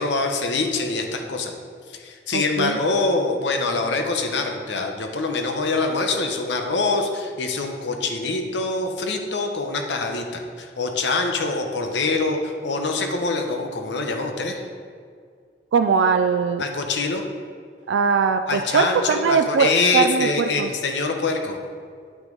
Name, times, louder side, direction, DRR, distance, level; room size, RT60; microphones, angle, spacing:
voice 1, 0.0-1.5 1.9-14.6 16.6-17.2 18.5-21.6, left 3 dB, 75° left, 4 dB, 0.8 m, -24 dB
voice 2, 2.3-2.8 15.7-16.6 17.9-20.7, right 5 dB, 90° right, 8 dB, 0.3 m, -21 dB
9.8 x 6.0 x 3.9 m, 2.1 s
head